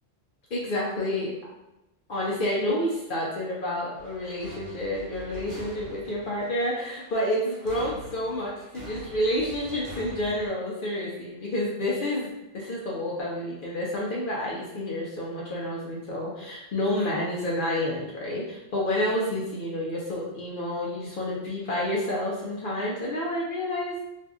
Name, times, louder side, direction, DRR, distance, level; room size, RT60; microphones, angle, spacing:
voice 1, 0.5-1.3 2.1-24.0, left 1 dB, 60° left, -5 dB, 0.7 m, -29 dB
sound 1, 3.9-10.5, equal, 65° right, 0.9 m, -44 dB
2.6 x 2.4 x 2.3 m, 0.95 s
omnidirectional pair, 1.1 m